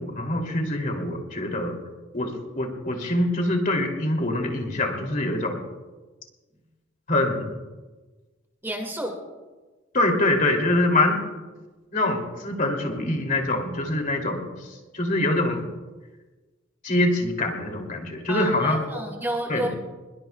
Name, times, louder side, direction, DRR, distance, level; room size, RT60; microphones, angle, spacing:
voice 1, 0.0-1.8 2.1-5.6 7.1-7.5 9.9-11.2 11.9-15.6 16.8-18.8 19.5-19.8, left 1 dB, 40° left, 2 dB, 3.0 m, -24 dB
voice 2, 8.6-9.2 18.3-19.7, right 1 dB, 10° right, 2 dB, 2.1 m, -30 dB
25.0 x 22.0 x 2.4 m, 1.3 s
head